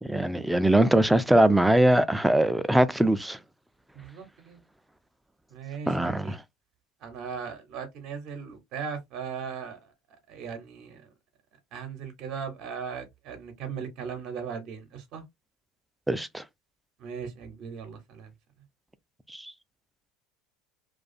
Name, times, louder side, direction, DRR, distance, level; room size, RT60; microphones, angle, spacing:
voice 1, 0.0-3.4 5.9-6.4 16.1-16.4 19.3-19.5, right 1 dB, 5° right, 0.3 m, -22 dB
voice 2, 3.9-4.6 5.5-6.4 7.0-9.9 10.3-11.1 11.7-15.2 17.0-18.3, right 6 dB, 55° right, 0.7 m, -38 dB
2.3 x 2.3 x 2.5 m
hypercardioid pair, 85°, 0 cm